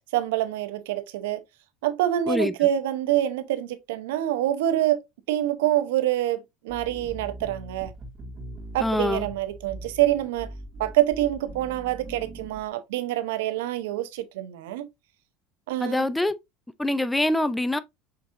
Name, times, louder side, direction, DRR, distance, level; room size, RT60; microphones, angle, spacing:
voice 1, 0.1-1.4 1.8-5.0 5.3-6.4 6.6-7.9 8.7-10.5 10.8-14.9 15.7-16.1, right 13 dB, 90° right, 0.6 m, -26 dB
sound 1, 6.7-12.7, right 1 dB, 30° right, 1.9 m, -41 dB
voice 2, 8.8-9.3 15.8-16.3 16.8-17.8, left 1 dB, 5° left, 0.4 m, -24 dB
5.8 x 3.6 x 2.5 m
supercardioid pair, 130°, 0 cm